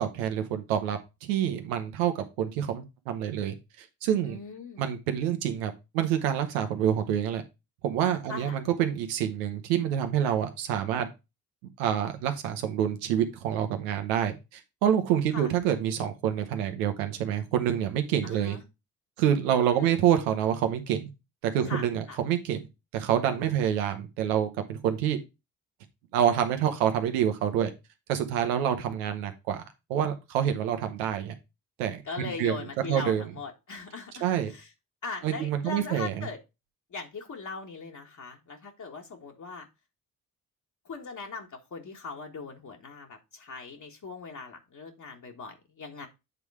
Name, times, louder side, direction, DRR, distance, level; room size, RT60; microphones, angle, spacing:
voice 1, 0.0-3.5 4.0-4.4 4.8-7.4 7.8-11.1 11.8-18.6 19.2-21.1 21.4-22.7 22.9-25.2 26.1-27.7 28.1-29.6 29.9-31.3 31.8-32.6 32.9-33.2 34.2-34.5 35.2-36.3, right 9 dB, 85° right, 8 dB, 1.0 m, -27 dB
voice 2, 4.2-4.9 8.3-8.6 15.3-15.5 18.2-18.6 19.8-20.0 21.7-22.2 32.1-34.7 35.0-36.4 36.9-39.7 40.9-46.1, left 4 dB, 45° left, 1 dB, 1.6 m, -40 dB
8.1 x 3.6 x 4.8 m, 0.25 s
hypercardioid pair, 45°, 40 cm